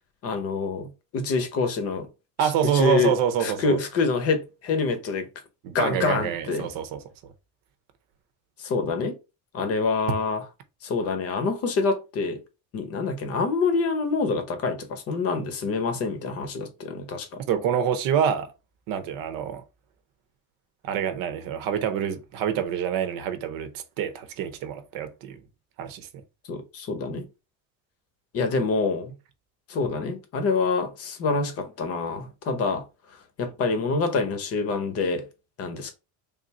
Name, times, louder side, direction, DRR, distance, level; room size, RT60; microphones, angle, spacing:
voice 1, 0.2-2.1 2.4-5.3 5.7-6.7 8.6-9.2 9.5-10.4 10.8-12.4 12.7-17.4 26.5-27.3 28.3-29.1 29.7-32.8 33.4-35.3 35.6-35.9, left 4 dB, 40° left, 0.9 m, -26 dB
voice 2, 2.4-3.8 5.6-7.0 17.5-18.5 18.9-19.6 20.8-25.4 25.8-26.1, right 8 dB, 65° right, 0.7 m, -26 dB
3.5 x 2.5 x 4.1 m
cardioid pair, 155°, 37 cm